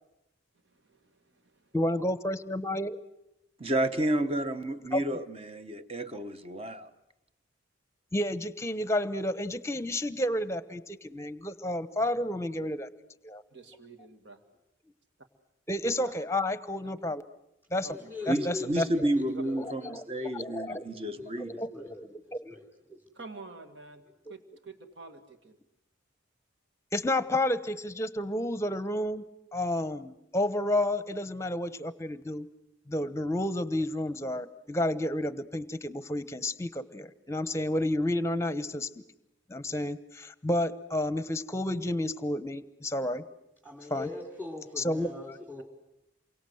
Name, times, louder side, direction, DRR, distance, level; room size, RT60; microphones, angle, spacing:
voice 1, 1.7-2.9 4.9-5.0 8.1-12.9 13.2-13.4 15.7-17.2 17.7-18.0 18.3-19.1 19.6-20.0 20.3-20.9 21.3-22.6 22.9-23.0 26.9-29.2 29.5-32.5 32.9-38.9 39.5-43.2 43.9-44.1 44.8-45.1, left 1 dB, 15° left, 0.9 m, -31 dB
voice 2, 3.6-6.9 18.3-21.6, right 1 dB, 30° right, 1.2 m, -31 dB
voice 3, 13.5-14.4 16.0-16.1 16.8-16.9 17.8-18.3 19.2-19.4 23.2-24.0 24.3-25.6 45.6-45.7, right 3 dB, 65° right, 2.0 m, -47 dB
voice 4, 17.9-22.6 43.6-45.6, left 3 dB, 10° right, 3.1 m, -43 dB
28.5 x 23.5 x 7.9 m
head